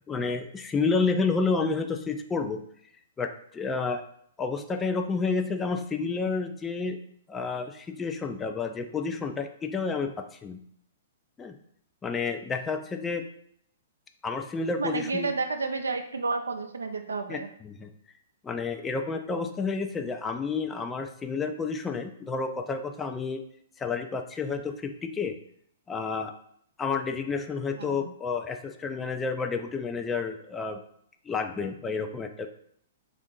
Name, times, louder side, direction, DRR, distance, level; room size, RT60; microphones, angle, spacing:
voice 1, 0.1-2.6 3.2-4.0 4.4-7.0 7.3-10.6 11.4-11.5 12.0-13.3 14.2-15.3 17.3-17.9 18.4-23.4 23.8-25.4 25.9-26.3 26.8-30.8 31.2-32.5, left 4 dB, 15° left, 6 dB, 0.4 m, -30 dB
voice 2, 14.8-17.5 27.8-28.1, right 3 dB, 80° right, 6 dB, 0.4 m, -31 dB
3.5 x 2.5 x 3.7 m, 0.67 s
figure-of-eight pair, 115°, 0 cm